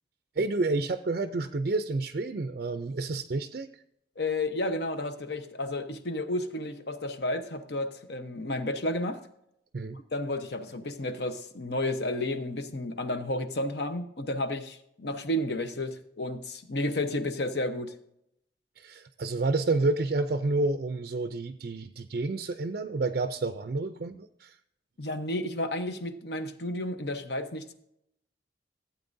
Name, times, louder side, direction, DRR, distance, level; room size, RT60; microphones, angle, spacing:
voice 1, 0.4-3.8 9.7-10.0 18.8-24.6, right 3 dB, 50° right, 9 dB, 0.4 m, -29 dB
voice 2, 4.2-9.2 9.9-17.9 25.0-27.7, left 1 dB, 60° left, 8 dB, 0.9 m, -32 dB
15.5 x 8.3 x 2.7 m, 0.76 s
head